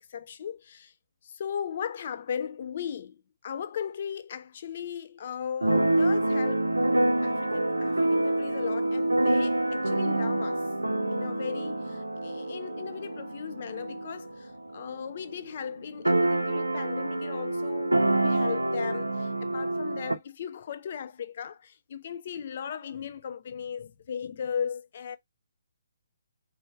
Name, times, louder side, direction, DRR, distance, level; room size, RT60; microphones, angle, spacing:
voice 1, 0.1-0.9 1.2-6.7 7.2-10.7 11.1-25.2, left 8 dB, 40° left, 0.5 m, -37 dB
Keyboard (musical), 5.6-15.2 15.4-15.5 15.7-20.2, right 1 dB, 80° right, 0.5 m, -27 dB
4.3 x 2.1 x 3.9 m
figure-of-eight pair, 135°, 0 cm